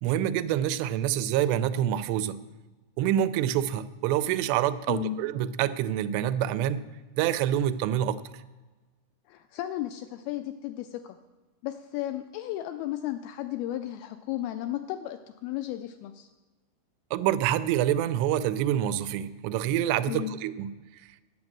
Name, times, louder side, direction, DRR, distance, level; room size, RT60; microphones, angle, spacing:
voice 1, 0.0-2.4 3.0-6.8 7.2-8.2 17.1-20.7, right 11 dB, 90° right, 13 dB, 2.7 m, -26 dB
voice 2, 9.3-11.2 11.6-16.3 20.1-20.3, left 13 dB, 85° left, 9 dB, 2.2 m, -34 dB
9.6 x 8.7 x 7.3 m, 1.2 s
omnidirectional pair, 4.8 m